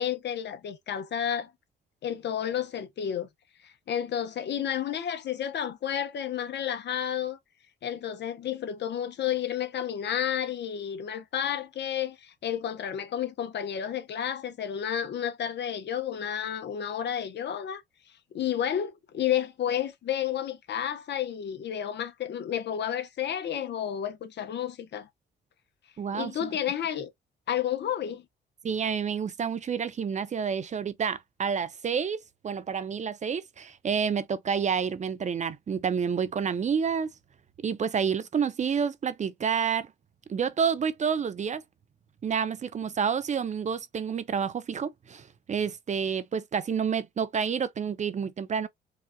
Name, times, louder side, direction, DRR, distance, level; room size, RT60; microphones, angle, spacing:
voice 1, 0.0-1.5 2.0-3.3 3.6-7.4 7.8-17.8 18.3-25.1 26.1-27.1 27.5-28.2, left 9 dB, 60° left, 0.9 m, -31 dB
voice 2, 26.0-26.5 28.6-37.1 37.6-39.9 40.3-41.6 42.2-48.7, right 6 dB, 35° right, 0.5 m, -29 dB
4.8 x 2.5 x 2.2 m
cardioid pair, 90°, 20 cm